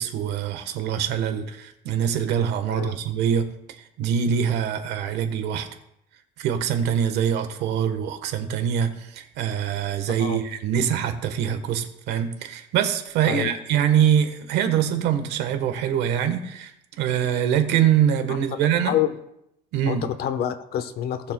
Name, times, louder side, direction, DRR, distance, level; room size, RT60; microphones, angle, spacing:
voice 1, 0.0-3.5 4.0-5.7 6.4-16.7 17.0-19.0 19.7-20.0, right 9 dB, 90° right, 8 dB, 1.2 m, -24 dB
voice 2, 10.1-10.4 13.3-13.5 18.3-18.4 18.8-19.2 19.9-21.3, left 10 dB, 70° left, 10 dB, 1.0 m, -27 dB
18.5 x 6.8 x 2.2 m, 0.81 s
cardioid pair, 110°, 17 cm